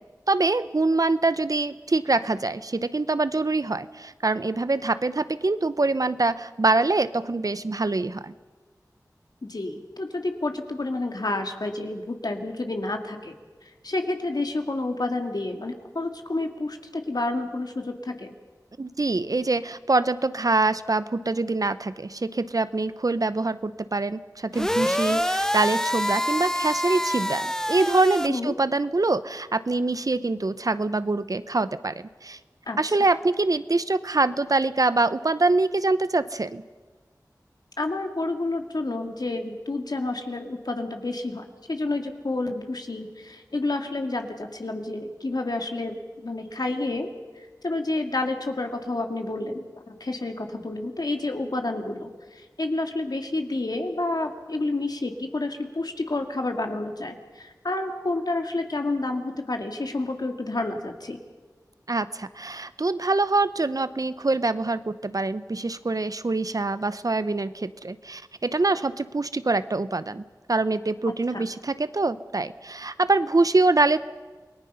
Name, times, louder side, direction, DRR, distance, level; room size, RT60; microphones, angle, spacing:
voice 1, 0.3-8.3 18.8-32.4 32.8-36.6 61.9-74.0, right 3 dB, 60° right, 14 dB, 0.8 m, -24 dB
voice 2, 9.5-13.4 13.8-18.3 28.3-28.5 32.7-32.8 37.8-47.1 47.4-61.2 71.3-71.4, left 2 dB, 70° left, 5 dB, 2.1 m, -29 dB
sound 1, 24.5-28.3, equal, 10° left, 0.7 m, -26 dB
28.5 x 19.0 x 5.6 m, 1.4 s
wide cardioid pair, 40°, 7 cm